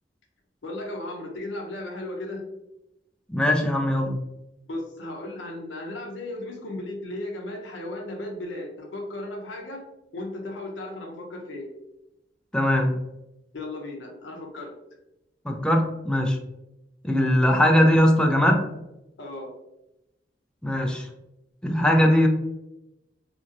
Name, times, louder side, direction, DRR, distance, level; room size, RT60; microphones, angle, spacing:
voice 1, 0.6-2.4 4.7-9.8 10.1-11.7 13.5-14.7 19.2-19.5, left 1 dB, 80° left, 1 dB, 0.6 m, -35 dB
voice 2, 3.3-4.2 12.5-12.9 15.5-16.4 17.0-18.7 20.6-21.1 21.6-22.3, equal, 5° left, 2 dB, 0.3 m, -20 dB
2.8 x 2.7 x 2.4 m, 0.91 s
head